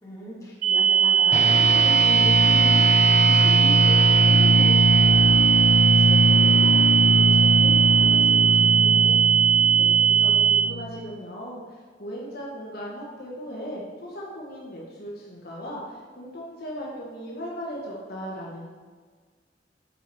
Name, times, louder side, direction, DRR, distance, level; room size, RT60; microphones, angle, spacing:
voice 1, 0.0-5.4 5.7-9.2, equal, 20° left, -7 dB, 2.2 m, -38 dB
sound 1, 0.6-10.6, right 8 dB, 50° right, 1.1 m, -19 dB
sound 2, 1.3-11.0, left 1 dB, 40° left, 0.7 m, -22 dB
voice 2, 9.8-18.7, equal, 60° left, -4 dB, 1.3 m, -37 dB
7.9 x 4.6 x 4.7 m, 1.5 s
head